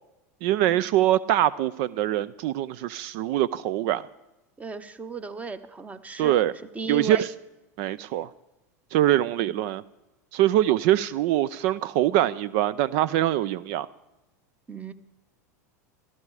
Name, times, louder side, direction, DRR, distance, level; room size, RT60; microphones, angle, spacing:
voice 1, 0.4-4.1 6.2-6.5 6.9-7.3 7.8-8.3 8.9-9.8 10.3-13.9, right 13 dB, 60° right, 20 dB, 0.5 m, -23 dB
voice 2, 4.6-6.3 6.7-7.2 9.4-9.5 14.7-14.9, right 4 dB, 15° right, 13 dB, 1.1 m, -35 dB
17.0 x 13.5 x 4.9 m, 1.0 s
hypercardioid pair, 105°, 9 cm